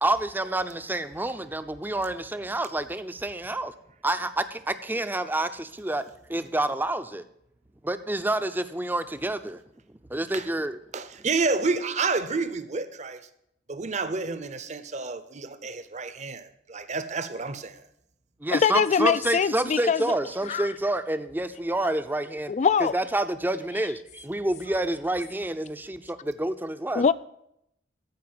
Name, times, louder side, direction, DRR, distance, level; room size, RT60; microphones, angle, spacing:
voice 1, 0.0-3.7 4.0-6.0 6.3-7.2 7.8-9.6 9.9-10.8 18.4-22.5 22.8-27.0, right 1 dB, 10° right, 0.5 m, -28 dB
voice 2, 10.9-13.3 13.7-17.8, right 4 dB, 40° right, 0.8 m, -29 dB
voice 3, 18.5-20.0 20.5-20.6 22.5-22.9 27.0-27.1, left 6 dB, 40° left, 0.3 m, -22 dB
14.5 x 4.8 x 7.7 m
head